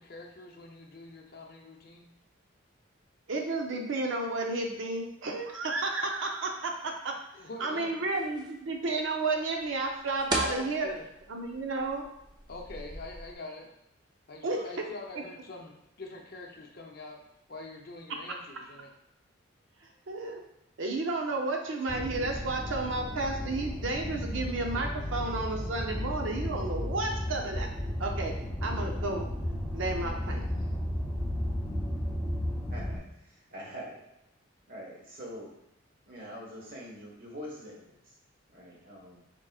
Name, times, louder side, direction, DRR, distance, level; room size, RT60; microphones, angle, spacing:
voice 1, 0.0-2.1 7.3-8.0 10.4-11.1 12.5-13.7 14.3-17.2 17.5-18.9, left 2 dB, 50° left, 1 dB, 0.6 m, -44 dB
voice 2, 3.3-7.1 7.6-10.9 11.3-12.1 14.4-14.6 20.1-20.4 20.8-27.7 28.0-28.3 28.6-29.3 29.7-30.5, right 3 dB, 70° right, 1 dB, 0.6 m, -32 dB
sound 1, 8.0-13.3, right 1 dB, 20° right, 0.5 m, -39 dB
sound 2, 21.9-33.0, left 1 dB, ahead, 1.0 m, -34 dB
voice 3, 32.7-34.0 34.7-35.5 36.0-38.1 38.5-39.2, equal, 45° right, -3 dB, 1.2 m, -44 dB
4.9 x 3.7 x 2.3 m, 0.85 s
head